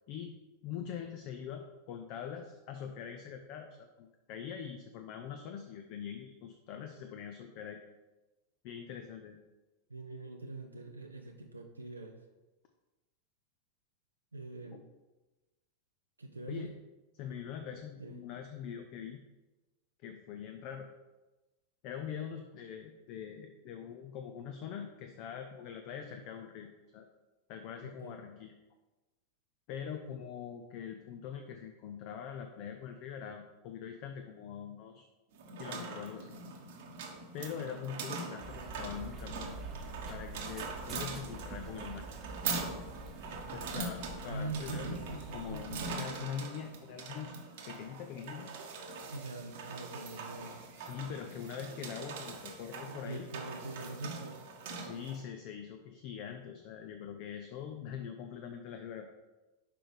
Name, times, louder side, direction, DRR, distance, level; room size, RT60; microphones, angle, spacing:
voice 1, 0.6-7.8 8.6-9.4 16.5-16.7 17.1-19.2 20.0-20.9 21.8-26.7 26.9-27.1 27.5-28.5 29.7-35.1 35.6-36.3 37.3-39.6 40.1-42.1 43.5-48.5 50.8-53.3 54.7-59.1, left 8 dB, 45° left, 5 dB, 0.6 m, -43 dB
voice 2, 9.9-12.3 14.3-14.8 16.2-16.7 18.0-18.2 27.8-28.2 44.3-46.3 49.1-50.7 52.9-54.4, right 2 dB, 80° right, 2 dB, 0.6 m, -43 dB
sound 1, 35.3-55.2, right 4 dB, 55° right, 1.1 m, -42 dB
sound 2, 38.4-45.9, right 3 dB, 30° right, 1.0 m, -46 dB
6.0 x 5.0 x 4.8 m, 1.1 s
figure-of-eight pair, 90°, 0 cm